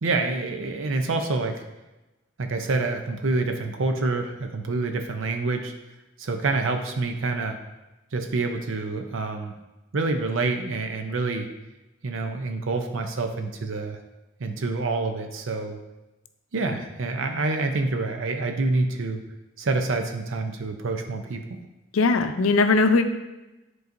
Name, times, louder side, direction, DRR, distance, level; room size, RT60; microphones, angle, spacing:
voice 1, 0.0-1.6 2.4-5.7 6.2-7.6 8.1-9.5 9.9-11.5 12.0-14.0 14.4-15.8 16.5-19.2 19.6-21.4, right 3 dB, 70° right, 5 dB, 0.6 m, -27 dB
voice 2, 21.9-23.0, left 3 dB, 85° left, 8 dB, 0.5 m, -19 dB
10.5 x 3.9 x 2.6 m, 1.0 s
head